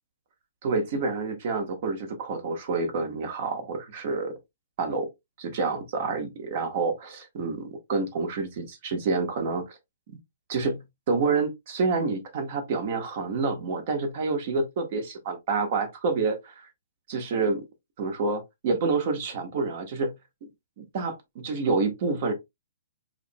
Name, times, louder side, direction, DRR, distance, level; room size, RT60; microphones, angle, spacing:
voice 1, 0.6-4.3 4.8-5.1 5.4-9.8 10.5-10.8 11.1-16.7 17.1-17.7 18.0-20.1 20.8-22.3, right 4 dB, 50° right, 1.2 m, -28 dB
4.7 x 3.1 x 2.2 m
hypercardioid pair, 145°, 0 cm